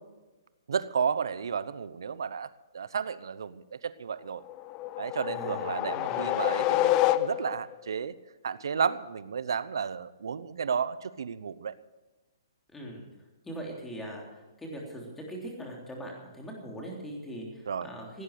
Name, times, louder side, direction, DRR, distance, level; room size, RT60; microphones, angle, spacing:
voice 1, 0.7-2.5 2.7-4.4 5.0-8.1 8.4-11.7 17.7-17.9, right 6 dB, 80° right, 16 dB, 0.8 m, -32 dB
sound 1, 4.5-7.7, left 15 dB, 25° left, 0.5 m, -28 dB
voice 2, 5.2-6.3 12.7-13.1 13.4-18.2, right 1 dB, 5° left, -1 dB, 3.4 m, -41 dB
17.0 x 10.0 x 6.7 m, 1.1 s
hypercardioid pair, 155°, 2 cm